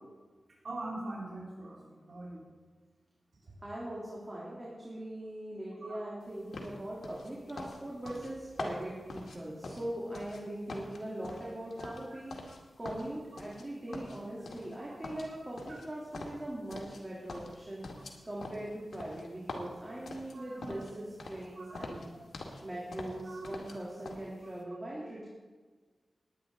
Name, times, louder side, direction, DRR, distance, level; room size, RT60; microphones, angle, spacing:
voice 1, 0.6-2.4 5.8-6.0 11.8-11.9 15.3-15.4 20.3-20.7 21.6-21.9 23.3-23.5, right 2 dB, 75° right, -5 dB, 3.9 m, -42 dB
voice 2, 3.6-22.1 22.6-25.3, right 1 dB, 25° right, -6 dB, 3.3 m, -41 dB
sound 1, 6.5-10.4 10.7-12.6 12.8-13.6 13.9-14.8 15.0-17.0 17.3-20.9 21.2-21.5 21.7-22.6 22.9-23.8 24.0-24.2, left 2 dB, 85° left, 2.0 m, -44 dB
19.5 x 10.0 x 3.9 m, 1.4 s
wide cardioid pair, 75°, 0 cm